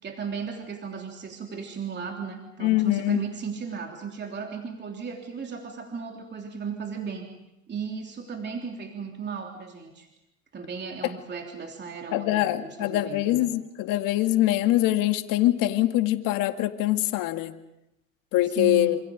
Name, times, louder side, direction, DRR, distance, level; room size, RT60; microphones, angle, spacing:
voice 1, 0.0-7.3 7.7-10.1 10.5-13.5 18.5-18.9, right 6 dB, 25° right, 2 dB, 3.5 m, -35 dB
voice 2, 2.6-3.2 12.1-17.5 18.3-19.0, left 15 dB, 55° left, 8 dB, 2.2 m, -23 dB
27.5 x 27.5 x 5.3 m, 0.88 s
hypercardioid pair, 85°, 39 cm